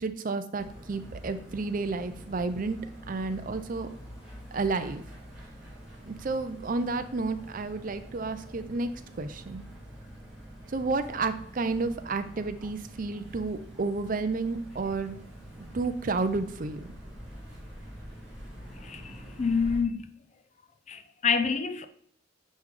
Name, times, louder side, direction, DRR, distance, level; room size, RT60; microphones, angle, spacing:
voice 1, 0.0-3.9 4.5-5.0 6.0-8.9 9.2-9.6 10.7-15.2 15.7-16.9, right 3 dB, 40° right, 0.5 m, -31 dB
sound 1, 0.6-19.8, equal, 5° right, 1.6 m, -46 dB
voice 2, 18.8-20.1 20.9-21.9, left 5 dB, 35° left, 0.5 m, -28 dB
9.4 x 3.2 x 3.7 m
head